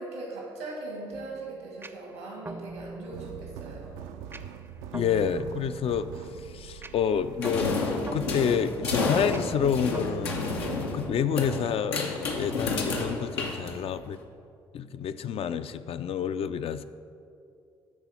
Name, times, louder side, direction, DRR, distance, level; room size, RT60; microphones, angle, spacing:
voice 1, 0.0-4.0, right 2 dB, 90° right, -2 dB, 1.7 m, -39 dB
sound 1, 1.1-11.7, right 3 dB, 20° right, 0.5 m, -43 dB
sound 2, 3.1-8.3, right 8 dB, 70° right, 0.4 m, -44 dB
voice 2, 4.9-10.4 10.9-14.2 14.7-16.8, left 7 dB, 45° left, 11 dB, 0.4 m, -29 dB
sound 3, 7.4-14.2, left 3 dB, 85° left, 0.6 m, -30 dB
9.8 x 4.1 x 5.5 m, 2.5 s
hypercardioid pair, 45°, 13 cm